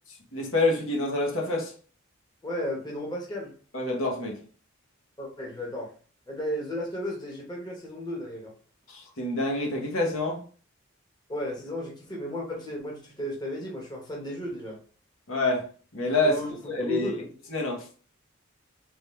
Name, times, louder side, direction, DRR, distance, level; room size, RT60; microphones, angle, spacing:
voice 1, 0.3-1.7 3.7-4.4 8.9-10.4 15.3-15.6 15.9-16.4 16.7-17.1 17.5-17.8, left 2 dB, 65° left, 1.3 m, -27 dB
voice 2, 2.4-3.5 5.2-5.9 6.3-8.5 11.3-14.8 16.2-16.5 16.9-17.3, left 1 dB, 20° left, 1.1 m, -34 dB
3.8 x 3.5 x 3.2 m
head